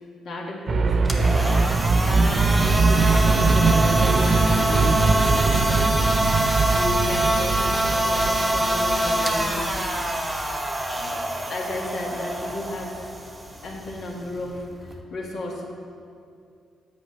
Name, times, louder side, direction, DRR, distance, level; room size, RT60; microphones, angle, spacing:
voice 1, 0.2-1.6 2.0-6.1 6.4-9.7 10.9-11.2 11.5-12.9 13.6-15.6, left 2 dB, 65° left, -2 dB, 1.8 m, -33 dB
sound 1, 0.7-10.6, right 4 dB, 45° right, 0.5 m, -22 dB
sound 2, 0.9-15.0, right 1 dB, 10° right, 1.0 m, -25 dB
8.2 x 5.1 x 7.6 m, 2.4 s
cardioid pair, 90°, 0 cm